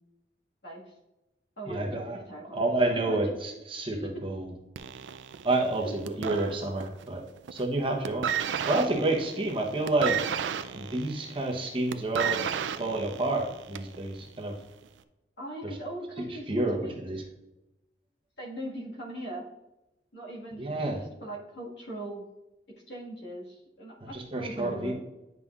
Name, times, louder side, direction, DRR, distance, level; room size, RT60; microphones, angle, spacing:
voice 1, 0.6-0.9 1.6-2.6 3.1-3.2 3.9-4.1 5.8-5.9 9.7-9.8 15.4-16.9 18.4-19.4 20.1-22.2 22.9-24.9, right 1 dB, 70° left, -3 dB, 1.7 m, -40 dB
voice 2, 1.7-2.2 2.5-4.5 5.4-7.2 7.5-8.3 8.7-10.2 10.7-12.4 12.8-14.6 15.6-15.7 16.5-17.2 20.6-21.0 24.0-24.9, right 2 dB, 30° right, 0 dB, 0.9 m, -29 dB
sound 1, 4.8-7.1 7.4-7.7 8.0-14.0 14.8-14.9, right 8 dB, 85° right, 0.4 m, -33 dB
9.3 x 5.4 x 2.4 m, 0.97 s
head